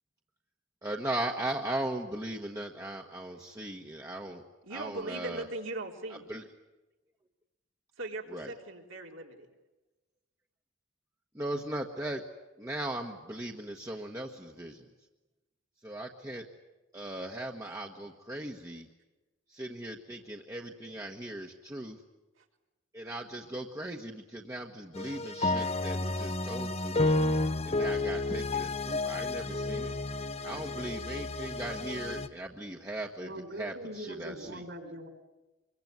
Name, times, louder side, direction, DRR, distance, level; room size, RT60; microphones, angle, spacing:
voice 1, 0.8-4.4 4.7-5.4 6.3-6.4 8.3-8.5 11.3-12.2 12.6-14.8 15.8-16.5 16.9-18.9 19.5-22.0 22.9-27.2 27.6-29.9 30.4-33.3 33.6-34.6, right 1 dB, 15° right, 0 dB, 1.3 m, -38 dB
voice 2, 4.6-6.2 8.0-9.5, right 2 dB, 80° right, 1 dB, 3.8 m, -39 dB
sound 1, 24.9-32.3, left 2 dB, 30° left, 0.9 m, -31 dB
voice 3, 33.2-35.1, equal, 60° right, 6 dB, 4.0 m, -41 dB
25.0 x 23.0 x 9.5 m, 1.1 s
head